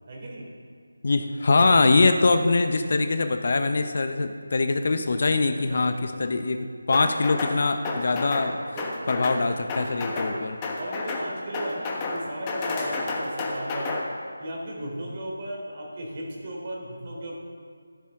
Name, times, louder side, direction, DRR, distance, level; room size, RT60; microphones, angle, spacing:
voice 1, 0.1-0.4 5.5-6.1 8.7-9.2 10.0-14.0 14.4-17.4, right 1 dB, 40° right, -2 dB, 3.4 m, -36 dB
voice 2, 1.0-8.6 9.1-10.6, left 3 dB, 50° left, 8 dB, 0.8 m, -23 dB
sound 1, 6.9-7.6 7.9-8.5 8.8-9.4 9.7-10.3 10.6-11.3 11.5-12.2 12.5-14.0, left 3 dB, 20° left, 1.4 m, -30 dB
14.0 x 11.5 x 3.7 m, 2.2 s
figure-of-eight pair, 165°, 0 cm